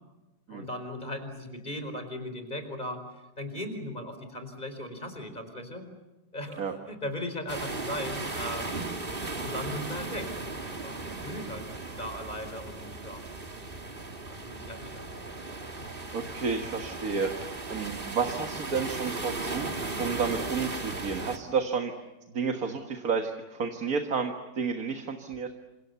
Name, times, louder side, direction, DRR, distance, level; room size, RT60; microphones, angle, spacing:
voice 1, 0.5-3.1 3.4-5.8 6.3-8.9 9.4-10.3 10.7-11.6 12.0-13.2 14.3-15.1, left 1 dB, 25° left, 8 dB, 4.7 m, -38 dB
sound 1, 7.5-21.4, right 3 dB, 30° right, 2.2 m, -36 dB
voice 2, 16.1-21.9 22.3-25.5, right 5 dB, 50° right, 5 dB, 2.0 m, -31 dB
29.0 x 26.5 x 6.9 m, 1.0 s
omnidirectional pair, 2.0 m